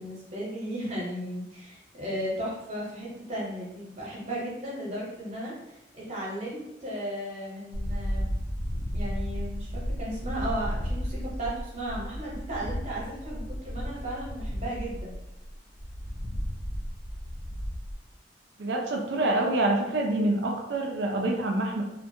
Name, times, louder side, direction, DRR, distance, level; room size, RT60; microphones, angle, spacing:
voice 1, 0.0-8.2 8.9-15.1, right 1 dB, 40° right, -5 dB, 0.9 m, -35 dB
sound 1, 7.7-17.9, equal, 60° left, 0.5 m, -34 dB
voice 2, 18.6-21.8, right 2 dB, 80° right, 0 dB, 0.4 m, -26 dB
2.4 x 2.2 x 2.6 m, 0.90 s
head